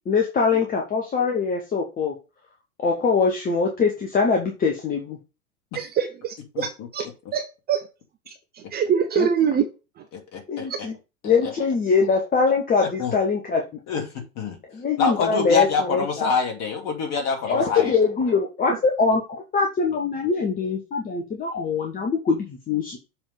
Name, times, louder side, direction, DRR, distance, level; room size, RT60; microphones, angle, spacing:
voice 1, 0.1-2.1 2.8-5.2 9.2-9.3 10.5-10.9 11.2-13.6 14.7-16.3 17.5-23.0, left 5 dB, 20° left, 1 dB, 1.2 m, -23 dB
voice 2, 5.7-7.0 7.3-7.8 8.5-9.6 10.7-10.8, right 8 dB, 20° right, 5 dB, 0.8 m, -24 dB
voice 3, 6.5-6.9 10.3-10.7 11.4-11.5 13.0-13.2 13.9-14.6 15.0-17.9, left 5 dB, 35° left, 3 dB, 2.5 m, -26 dB
7.3 x 3.8 x 5.0 m, 0.29 s
figure-of-eight pair, 90°, 43 cm